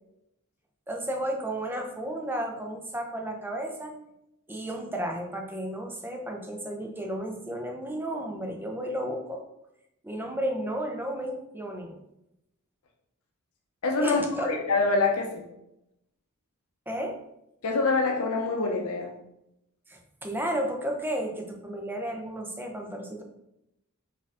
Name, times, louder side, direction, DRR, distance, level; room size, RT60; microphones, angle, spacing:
voice 1, 0.9-3.9 4.5-9.4 10.0-12.0 14.0-14.6 16.9-17.2 19.9-23.2, right 1 dB, 10° right, 2 dB, 0.5 m, -33 dB
voice 2, 13.8-15.4 17.6-19.1, left 3 dB, 75° left, 1 dB, 0.6 m, -25 dB
4.3 x 2.6 x 3.6 m, 0.84 s
head